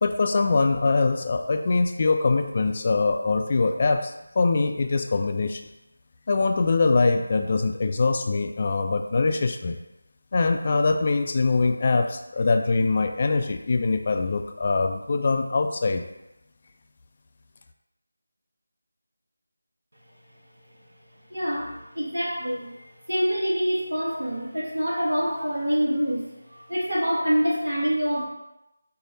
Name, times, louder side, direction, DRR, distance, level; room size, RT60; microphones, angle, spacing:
voice 1, 0.0-5.6 6.3-9.8 10.3-16.0, left 3 dB, 35° left, 5 dB, 0.3 m, -23 dB
voice 2, 21.3-28.3, equal, 75° right, -4 dB, 1.1 m, -26 dB
4.6 x 2.1 x 3.8 m, 0.90 s
figure-of-eight pair, 165°, 0 cm